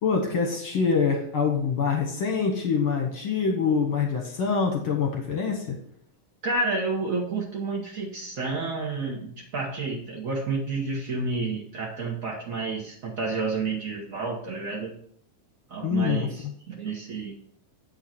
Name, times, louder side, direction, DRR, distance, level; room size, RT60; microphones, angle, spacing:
voice 1, 0.0-5.8 15.8-16.3, left 5 dB, 60° left, 3 dB, 1.5 m, -25 dB
voice 2, 6.4-15.0 15.7-17.3, right 3 dB, 80° right, -2 dB, 0.7 m, -30 dB
8.5 x 5.7 x 4.3 m, 0.63 s
omnidirectional pair, 3.3 m